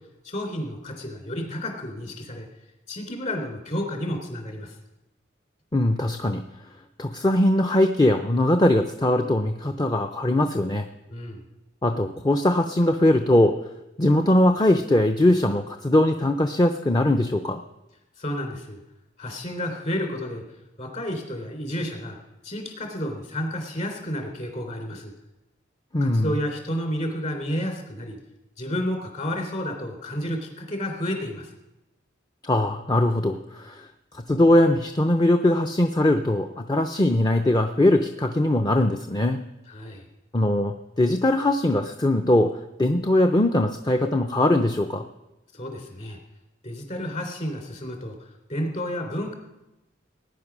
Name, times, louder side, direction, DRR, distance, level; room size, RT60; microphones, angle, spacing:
voice 1, 0.2-2.5 2.9-4.7 11.1-11.4 18.2-18.8 19.2-20.4 20.8-22.2 22.4-25.1 26.0-28.2 28.6-31.5 39.7-40.0 45.5-46.2 46.6-49.3, equal, 40° left, 3 dB, 3.4 m, -31 dB
voice 2, 5.7-6.4 7.0-10.9 11.8-13.6 14.0-17.6 25.9-26.3 32.4-33.9 34.1-39.4 40.3-45.0, left 1 dB, 20° left, 6 dB, 0.6 m, -21 dB
18.5 x 9.8 x 6.1 m, 0.96 s
head